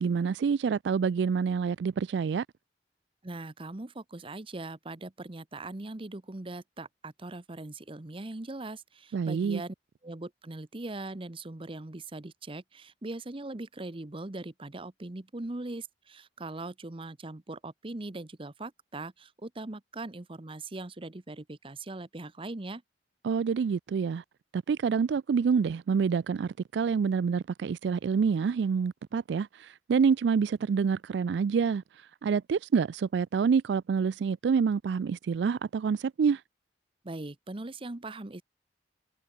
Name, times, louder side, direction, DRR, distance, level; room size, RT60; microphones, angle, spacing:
voice 1, 0.0-2.4 9.1-9.6 23.2-24.2 24.5-31.8 32.2-36.4, right 6 dB, 75° right, 0.3 m, -27 dB
voice 2, 3.2-9.7 10.0-22.8 37.0-38.4, right 2 dB, 30° right, 0.9 m, -40 dB
head